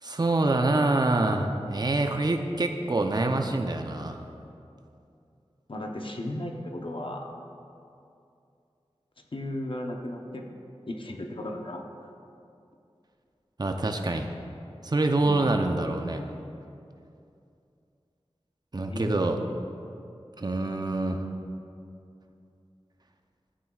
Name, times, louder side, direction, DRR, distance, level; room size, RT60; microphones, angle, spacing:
voice 1, 0.0-4.2 13.6-14.3 14.8-16.2 18.7-19.4 20.4-21.2, right 2 dB, 40° right, 4 dB, 0.7 m, -26 dB
voice 2, 5.7-7.4 9.3-10.5 10.9-11.8 15.2-15.6 18.8-19.5, left 1 dB, 55° left, 2 dB, 0.9 m, -35 dB
14.0 x 9.0 x 2.4 m, 2.6 s
wide cardioid pair, 50°, 11 cm